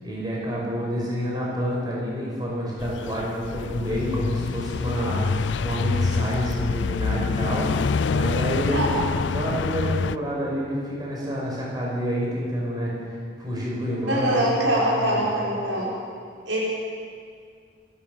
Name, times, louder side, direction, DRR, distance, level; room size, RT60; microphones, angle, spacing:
voice 1, 0.0-9.0 9.3-15.2, equal, 20° right, -4 dB, 5.7 m, -28 dB
sound 1, 2.8-10.2, left 5 dB, 75° left, 0.4 m, -26 dB
voice 2, 14.1-15.9 16.4-16.6, right 1 dB, 80° right, -4 dB, 6.2 m, -23 dB
27.5 x 13.0 x 8.0 m, 2.1 s
head